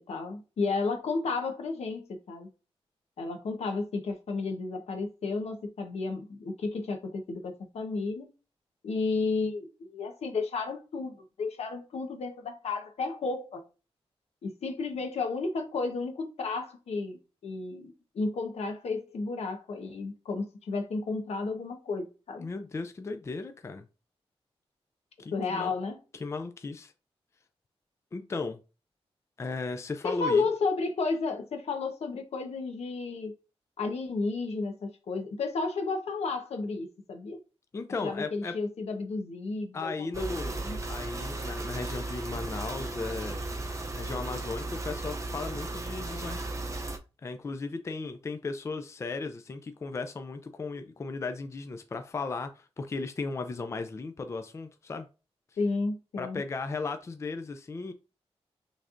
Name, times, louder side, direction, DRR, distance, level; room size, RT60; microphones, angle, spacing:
voice 1, 0.1-2.5 3.2-8.3 8.8-13.6 14.4-22.5 25.3-26.0 30.0-33.3 33.8-37.4 38.0-40.8 55.6-56.4, left 3 dB, 85° left, 1.1 m, -32 dB
voice 2, 22.4-23.9 25.2-25.7 26.1-26.9 28.1-28.6 29.4-30.4 37.7-38.5 39.7-40.6 40.9-43.5 43.9-46.5 47.2-55.1 56.2-57.9, left 4 dB, 25° left, 0.4 m, -36 dB
sound 1, 40.1-47.0, right 2 dB, 30° right, 0.6 m, -35 dB
6.3 x 3.3 x 2.5 m
wide cardioid pair, 180°, 11 cm